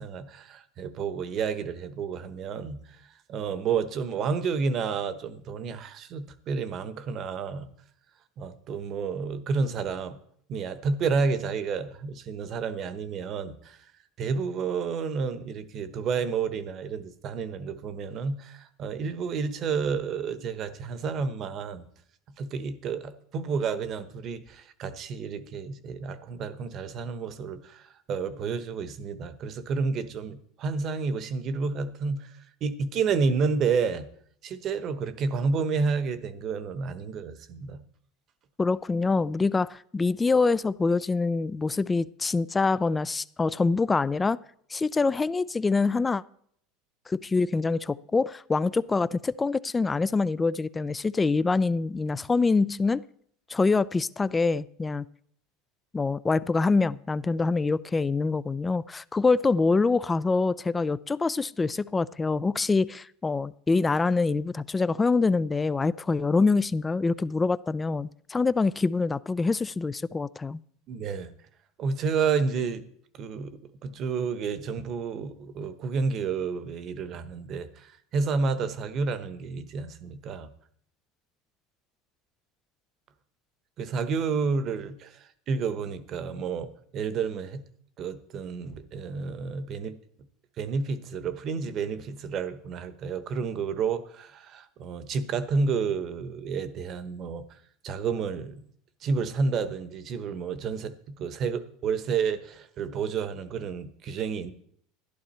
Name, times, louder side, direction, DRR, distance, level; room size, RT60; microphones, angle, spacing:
voice 1, 0.0-7.7 8.4-10.2 10.5-13.8 14.2-21.9 22.4-34.1 34.4-37.8 70.9-71.3 71.8-72.8 73.1-80.5 83.8-87.6 88.0-90.0 90.6-97.6 97.8-98.6 99.0-104.5, right 5 dB, 45° right, 1.1 m, -30 dB
voice 2, 38.6-44.4 44.7-46.2 47.1-53.0 53.5-55.1 55.9-70.6, left 4 dB, 15° left, 0.4 m, -25 dB
12.0 x 11.0 x 4.3 m
supercardioid pair, 110°, 0 cm